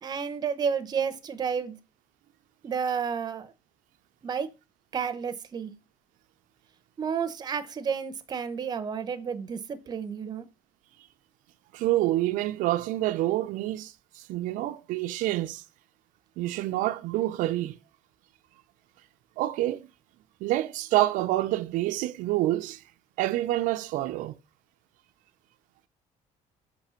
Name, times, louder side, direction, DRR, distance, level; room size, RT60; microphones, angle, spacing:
voice 1, 0.0-1.7 2.6-3.5 4.2-4.5 4.9-5.7 7.0-10.5, right 6 dB, 30° right, 0.7 m, -31 dB
voice 2, 11.7-15.6 16.4-17.8 19.4-19.9 20.4-22.8 23.2-24.3, right 15 dB, 85° right, 0.4 m, -27 dB
6.0 x 3.1 x 5.6 m
cardioid pair, 140°, 13 cm